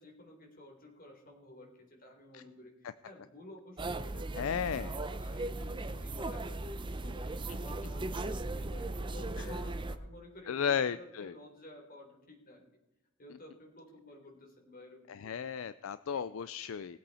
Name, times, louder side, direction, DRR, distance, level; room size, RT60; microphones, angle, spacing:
voice 1, 0.0-2.7 3.0-4.8 5.1-12.6 13.2-15.5 16.1-16.2, left 1 dB, 45° left, 1 dB, 3.7 m, -53 dB
sound 1, 3.8-10.0, right 2 dB, 25° right, 0.6 m, -37 dB
voice 2, 4.4-4.9 10.5-11.3 15.1-17.0, left 7 dB, 70° left, 15 dB, 0.4 m, -34 dB
20.0 x 8.3 x 4.3 m, 0.97 s
head